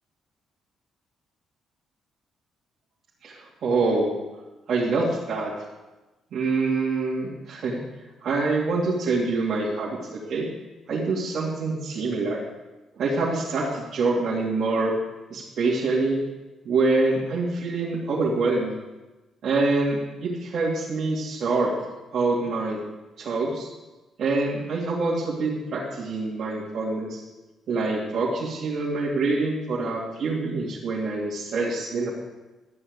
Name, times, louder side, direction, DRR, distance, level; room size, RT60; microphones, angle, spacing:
voice 1, 3.2-4.2 4.7-5.5 6.3-7.8 8.2-10.5 10.9-12.4 12.9-14.9 15.3-16.2 16.6-18.7 19.4-21.7 22.1-22.8 23.2-23.7 24.2-27.2 27.7-32.1, right 3 dB, 60° right, -6 dB, 2.7 m, -25 dB
13.0 x 6.4 x 8.0 m, 1.1 s
cardioid pair, 90°, 0 cm